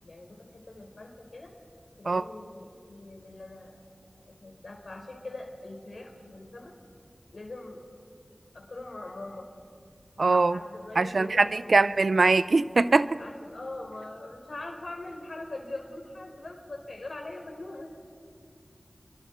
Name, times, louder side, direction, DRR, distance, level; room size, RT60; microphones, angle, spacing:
voice 1, 0.0-1.5 2.0-3.9 4.3-6.7 7.3-7.8 8.5-9.5 10.1-11.9 13.2-17.9, left 2 dB, 75° left, 2 dB, 4.1 m, -42 dB
voice 2, 10.2-10.6 11.0-13.1, right 3 dB, 80° right, 15 dB, 0.6 m, -22 dB
27.0 x 23.5 x 4.5 m, 2.3 s
wide cardioid pair, 50°, 0 cm